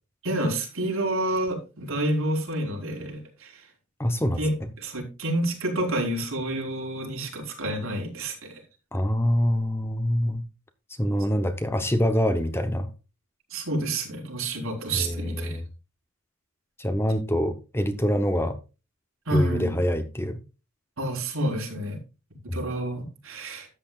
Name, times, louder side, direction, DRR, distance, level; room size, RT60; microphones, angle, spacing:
voice 1, 0.2-3.6 4.4-8.6 13.5-15.6 19.3-19.8 21.0-22.0 22.5-23.7, right 1 dB, 70° right, 4.1 m, -29 dB
voice 2, 4.0-4.7 8.9-10.5 11.0-12.9 14.9-15.6 16.8-18.6 19.3-20.4 22.5-22.6, equal, 10° left, 0.7 m, -25 dB
13.0 x 8.7 x 2.3 m
head